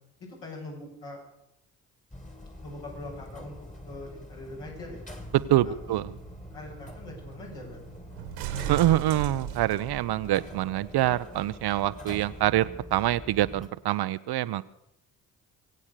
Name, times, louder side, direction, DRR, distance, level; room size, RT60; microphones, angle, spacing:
voice 1, 0.2-1.2 2.6-3.6 3.8-5.0 5.6-6.0 6.5-7.8, left 2 dB, 65° left, -3 dB, 7.6 m, -42 dB
sound 1, 2.1-13.7, left 1 dB, 15° left, 2.6 m, -45 dB
sound 2, 5.2-10.5 11.4-11.5, right 9 dB, 80° right, 1.8 m, -38 dB
voice 2, 5.3-6.1 8.7-14.6, right 14 dB, 55° right, 15 dB, 0.7 m, -25 dB
23.5 x 8.5 x 6.7 m, 0.80 s
hypercardioid pair, 40°, 46 cm